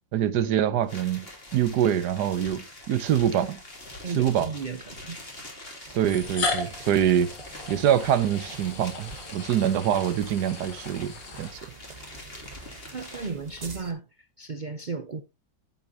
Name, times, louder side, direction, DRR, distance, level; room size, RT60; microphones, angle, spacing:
voice 1, 0.1-3.6 4.2-4.5 5.9-7.3 7.7-11.5, right 10 dB, 70° right, 1.3 m, -25 dB
sound 1, 0.8-13.5, left 1 dB, 30° left, 3.2 m, -45 dB
sound 2, 2.7-2.8 3.7-3.8 5.0-5.1 6.0-12.0, left 3 dB, 75° left, 2.8 m, -36 dB
voice 2, 4.0-5.4 9.6-9.7 12.9-14.0 14.4-15.2, right 4 dB, 85° right, 0.4 m, -35 dB
sound 3, 5.8-13.9, right 3 dB, 25° right, 1.3 m, -47 dB
10.5 x 8.8 x 2.8 m
omnidirectional pair, 2.0 m